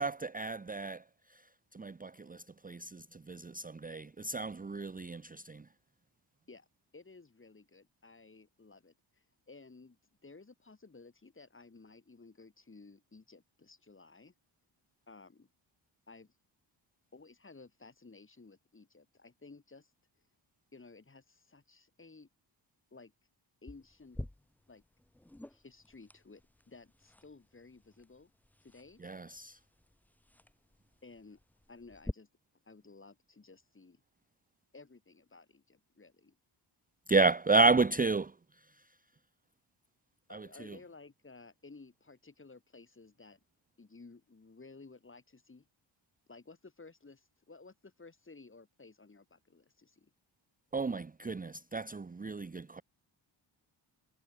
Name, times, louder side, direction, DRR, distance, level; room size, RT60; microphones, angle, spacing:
voice 1, 0.0-5.7 29.0-29.6 37.1-39.0 40.3-40.8 50.7-52.8, right 3 dB, 20° right, 0.8 m, -32 dB
voice 2, 6.9-14.3 15.1-15.5 16.1-16.3 17.1-19.9 20.7-22.3 22.9-23.1 23.6-24.2 24.7-24.8 25.5-26.4 26.7-28.3 28.6-29.0 31.0-31.4 31.7-32.3 32.6-34.0 34.7-36.4 37.6-37.9 40.3-43.4 43.8-45.7 46.3-50.1, left 3 dB, 25° left, 5.8 m, -55 dB
sound 1, 23.7-32.1, left 1 dB, 5° left, 0.5 m, -49 dB
cardioid pair, 105°, 46 cm